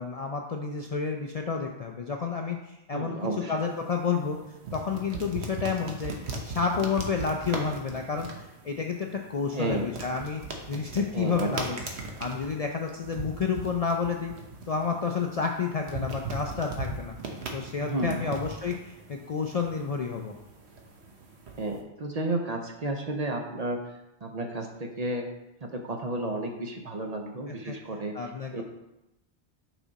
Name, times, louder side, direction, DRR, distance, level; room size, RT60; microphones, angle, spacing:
voice 1, 0.0-3.2 3.5-4.4 4.7-6.1 6.4-8.3 8.6-10.4 10.7-14.3 14.7-17.1 17.5-20.3 27.5-27.8 28.1-28.6, left 5 dB, 50° left, 2 dB, 0.4 m, -30 dB
voice 2, 2.9-3.5 9.5-9.9 11.1-11.6 17.8-18.2 21.6-23.8 24.2-25.3 25.6-28.6, right 2 dB, 45° right, 2 dB, 0.7 m, -32 dB
sound 1, 3.6-21.8, right 2 dB, 80° right, 1.2 m, -39 dB
6.0 x 4.9 x 4.0 m, 0.94 s
omnidirectional pair, 1.1 m